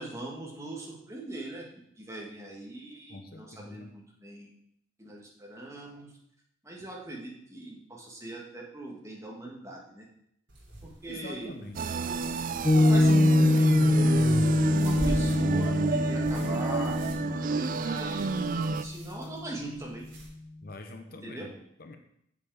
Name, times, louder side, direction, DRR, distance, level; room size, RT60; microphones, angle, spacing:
voice 1, 0.0-1.6 2.0-4.5 5.0-6.1 6.6-10.0 10.8-11.5 11.9-12.3 12.7-14.1 14.7-20.1 21.2-21.5, right 2 dB, 15° right, -2 dB, 1.8 m, -41 dB
voice 2, 3.1-3.9 11.1-12.0 20.6-21.5 21.8-22.0, left 2 dB, 50° left, 6 dB, 0.8 m, -45 dB
sound 1, 10.5-20.3, right 1 dB, 70° right, 3.4 m, -43 dB
sound 2, 11.7-18.8, right 4 dB, 45° right, 0.4 m, -30 dB
Piano, 12.6-19.3, left 2 dB, 25° left, 0.5 m, -24 dB
7.6 x 7.2 x 4.9 m, 0.73 s
head